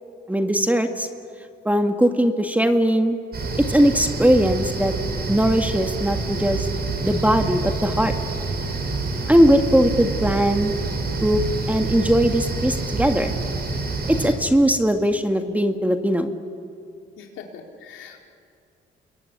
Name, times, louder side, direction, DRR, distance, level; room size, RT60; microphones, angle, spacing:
voice 1, 0.3-1.1 1.6-3.2 3.7-4.9 5.3-6.7 7.0-8.1 9.3-10.7 11.2-11.4 11.7-13.3 14.1-16.3, equal, 5° right, 6 dB, 1.7 m, -19 dB
sound 1, 3.3-14.3, right 3 dB, 50° right, 6.1 m, -27 dB
voice 2, 17.2-18.3, left 6 dB, 85° left, 2 dB, 4.0 m, -42 dB
28.0 x 22.0 x 9.7 m, 2.4 s
cardioid pair, 90°, 20 cm